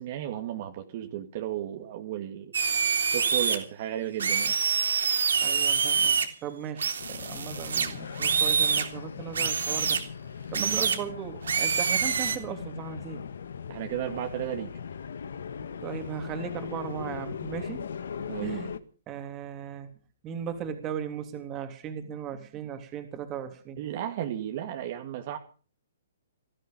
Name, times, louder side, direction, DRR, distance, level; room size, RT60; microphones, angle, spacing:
voice 1, 0.0-2.5 3.1-4.6 10.6-10.8 13.7-14.7 18.3-18.6 23.8-25.4, right 11 dB, 40° right, 4 dB, 2.4 m, -34 dB
sound 1, 2.5-3.5 4.2-6.2 6.8-8.9 9.3-10.0 10.5-11.0 11.4-12.4, right 6 dB, 85° right, 3.5 m, -26 dB
voice 2, 5.4-10.0 10.5-13.2 15.8-17.8 18.4-18.7 19.1-19.9 20.2-23.8, right 8 dB, 20° right, 7 dB, 3.1 m, -37 dB
sound 2, 7.0-18.8, left 7 dB, 75° left, 1.6 m, -39 dB
19.0 x 13.5 x 5.3 m, 0.40 s
hypercardioid pair, 155°, 0 cm